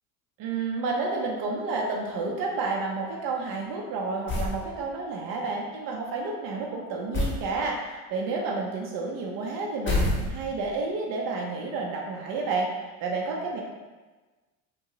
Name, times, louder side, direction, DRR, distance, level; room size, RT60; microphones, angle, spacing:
voice 1, 0.4-12.7 13.0-13.6, right 3 dB, 50° right, 0 dB, 0.5 m, -30 dB
sound 1, 4.3-4.6 7.1-7.5 9.9-10.6, left 2 dB, 25° left, 0.8 m, -26 dB
2.5 x 2.2 x 2.9 m, 1.3 s
hypercardioid pair, 80°, 44 cm